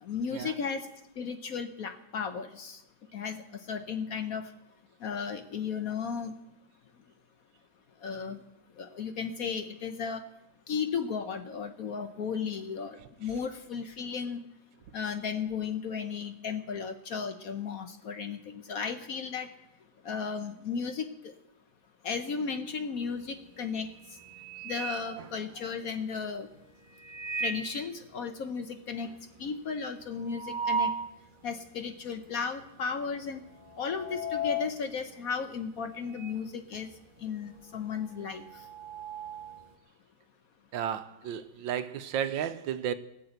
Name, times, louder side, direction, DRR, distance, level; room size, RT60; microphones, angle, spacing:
voice 1, 0.0-0.9 1.2-2.8 3.1-3.4 3.7-4.5 5.0-6.3 8.0-8.4 8.8-10.2 10.7-14.4 14.9-19.5 20.0-21.3 22.0-23.9 24.6-26.5 27.4-29.1 29.4-30.9 31.4-33.4 33.8-36.9 37.2-38.6, left 6 dB, 60° left, 1.1 m, -35 dB
sound 1, 23.1-23.4 23.8-25.9 26.9-27.8 28.2-28.3 28.6-28.7 29.0-31.2 31.7-31.8 32.6-32.9 33.1-36.5 36.7-39.7, right 1 dB, 50° right, 0.5 m, -36 dB
voice 2, 40.7-42.9, right 9 dB, 80° right, 1.4 m, -33 dB
18.0 x 6.9 x 7.9 m
omnidirectional pair, 2.1 m